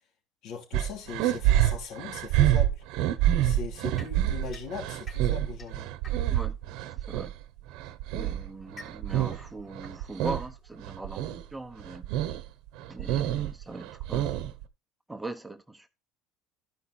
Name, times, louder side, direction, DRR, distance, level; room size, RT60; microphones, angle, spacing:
voice 1, 0.4-2.8 3.4-5.9, left 6 dB, 65° left, 3.4 m, -40 dB
sound 1, 0.7-7.3 7.7-9.5 9.7-10.5 10.8-11.4 11.8-12.4 12.8-14.6, right 12 dB, 75° right, 1.1 m, -27 dB
sound 2, 4.0-6.6 7.6-11.0, left 3 dB, 30° left, 3.2 m, -52 dB
voice 2, 7.0-7.3 8.1-12.1 12.9-14.5 15.1-15.9, right 2 dB, 10° right, 0.9 m, -40 dB
13.5 x 5.4 x 4.3 m
cardioid pair, 130°, 0 cm